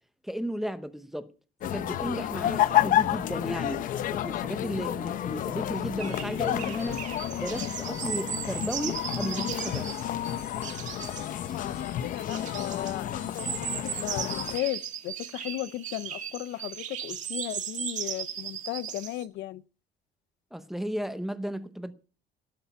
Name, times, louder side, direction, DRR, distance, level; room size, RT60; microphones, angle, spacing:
voice 1, 0.2-1.3 1.6-3.8 4.1-7.0 7.4-10.0 20.5-21.9, equal, ahead, 0.8 m, -34 dB
sound 1, 1.6-14.6, left 11 dB, 50° left, 0.7 m, -30 dB
sound 2, 6.0-19.2, right 9 dB, 45° right, 1.9 m, -37 dB
voice 2, 11.5-19.6, left 15 dB, 85° left, 0.6 m, -36 dB
17.5 x 8.5 x 5.9 m
cardioid pair, 175°, 17 cm